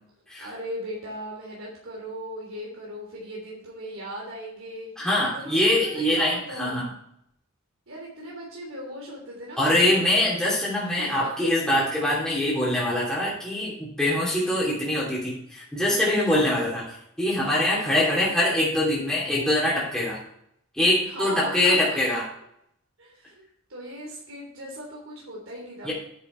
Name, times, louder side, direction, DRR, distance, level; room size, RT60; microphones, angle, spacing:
voice 1, 0.4-4.9 5.3-6.8 7.9-10.2 10.8-11.3 17.4-17.8 21.1-22.0 23.0-23.4 23.7-25.9, right 1 dB, 80° right, -3 dB, 3.2 m, -38 dB
voice 2, 5.0-6.9 9.6-20.2 20.7-22.3 25.8-25.9, left 1 dB, 5° left, -7 dB, 3.0 m, -23 dB
9.8 x 7.1 x 4.5 m, 0.72 s
head